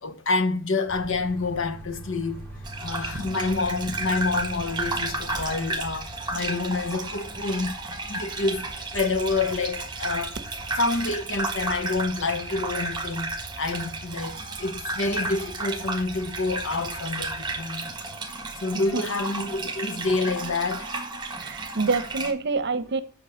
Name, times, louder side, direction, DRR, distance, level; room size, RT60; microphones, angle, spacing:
voice 1, 0.0-2.4 2.8-7.8 8.1-10.4 10.8-17.9 18.6-20.9, left 3 dB, 65° left, 1.1 m, -28 dB
sound 1, 0.9-17.6, right 1 dB, 10° left, 3.6 m, -43 dB
Gurgling / Bathtub (filling or washing), 2.6-22.3, right 3 dB, 20° right, 1.4 m, -33 dB
voice 2, 21.4-23.0, right 4 dB, 55° right, 0.9 m, -26 dB
8.4 x 5.6 x 6.9 m
head